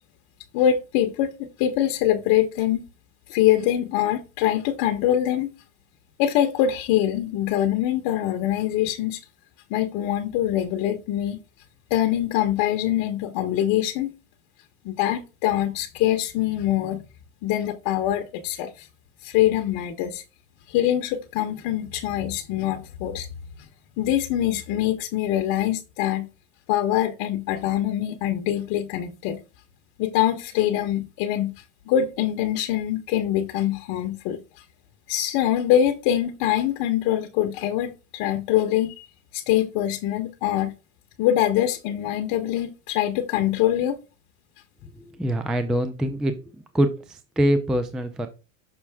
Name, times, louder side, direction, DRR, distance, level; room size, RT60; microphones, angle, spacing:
voice 1, 0.5-2.8 3.3-5.5 6.2-9.2 9.7-11.4 11.9-14.1 14.8-17.0 17.4-18.9 19.2-20.2 20.7-23.3 23.6-23.7 24.0-26.3 26.7-29.4 30.0-31.5 31.9-34.4 35.1-39.0 39.3-40.7 41.2-44.0, left 11 dB, 55° left, 1.0 m, -24 dB
voice 2, 45.1-46.3 46.7-48.3, equal, ahead, 0.3 m, -24 dB
6.2 x 5.5 x 3.4 m
supercardioid pair, 135°, 40 cm